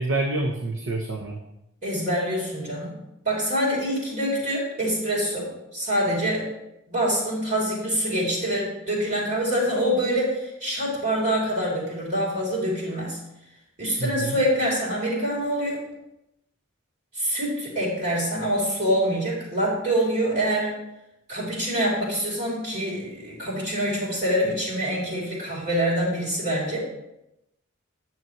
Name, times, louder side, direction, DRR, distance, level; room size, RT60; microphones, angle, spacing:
voice 1, 0.0-1.4 14.0-14.4, right 2 dB, 65° right, 1 dB, 0.9 m, -27 dB
voice 2, 1.8-2.9 3.2-6.5 6.9-13.2 13.8-15.8 17.1-20.7 21.3-26.8, equal, 40° right, -5 dB, 3.0 m, -25 dB
9.3 x 7.6 x 3.2 m, 0.87 s
head